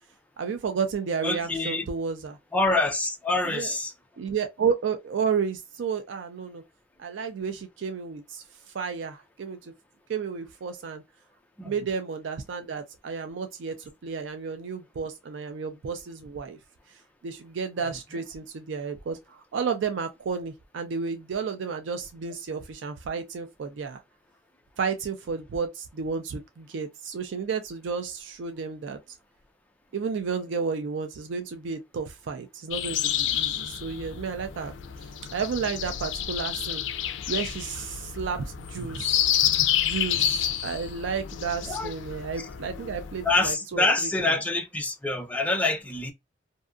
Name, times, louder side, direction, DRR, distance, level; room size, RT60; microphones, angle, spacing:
voice 1, 0.4-2.4 3.4-3.7 4.2-6.6 7.0-8.4 8.7-9.7 10.1-11.0 11.6-16.6 17.2-24.0 24.8-29.2 29.9-34.7 35.0-36.8 37.3-39.3 39.8-44.4, right 5 dB, 75° right, 0.4 m, -32 dB
voice 2, 1.2-1.9 2.5-3.9 11.6-11.7 41.7-41.9 43.2-46.1, left 2 dB, 10° left, 0.4 m, -26 dB
sound 1, 32.7-43.5, left 10 dB, 80° left, 0.4 m, -29 dB
2.6 x 2.4 x 2.4 m
head